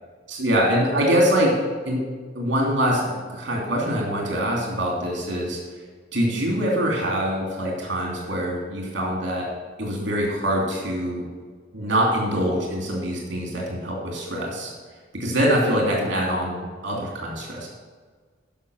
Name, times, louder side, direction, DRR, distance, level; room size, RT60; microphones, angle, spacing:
voice 1, 0.4-1.6 1.8-2.0 2.3-5.6 6.1-9.5 9.8-11.2 11.7-14.7 15.1-17.7, equal, 65° right, -2 dB, 2.9 m, -24 dB
11.0 x 6.1 x 6.5 m, 1.5 s
head